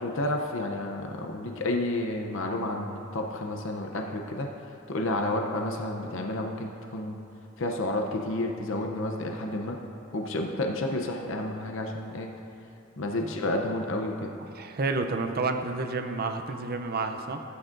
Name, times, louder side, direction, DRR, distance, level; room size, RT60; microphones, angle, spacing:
voice 1, 0.0-4.5 4.9-7.2 7.6-9.8 10.1-12.3 13.0-14.3, left 1 dB, 65° left, 2 dB, 0.7 m, -30 dB
voice 2, 14.6-17.4, right 3 dB, 50° right, 6 dB, 0.6 m, -30 dB
14.5 x 8.7 x 2.6 m, 2.7 s
head